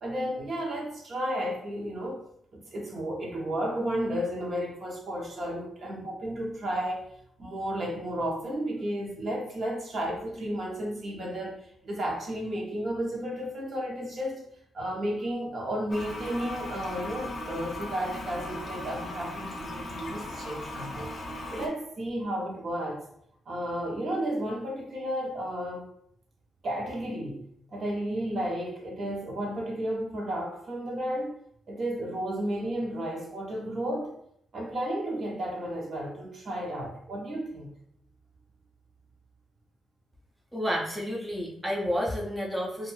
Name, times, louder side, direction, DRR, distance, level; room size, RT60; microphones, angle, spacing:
voice 1, 0.0-2.2 2.5-7.0 7.4-21.1 21.5-23.0 23.5-25.9 26.6-27.4 27.7-31.3 31.7-34.1 34.5-37.7, equal, 50° right, -1 dB, 0.8 m, -33 dB
Toilet flush, 15.9-21.7, left 1 dB, 50° left, 0.6 m, -38 dB
voice 2, 40.5-42.9, equal, 5° right, -3 dB, 0.5 m, -30 dB
2.5 x 2.3 x 3.0 m, 0.71 s
cardioid pair, 100°, 0 cm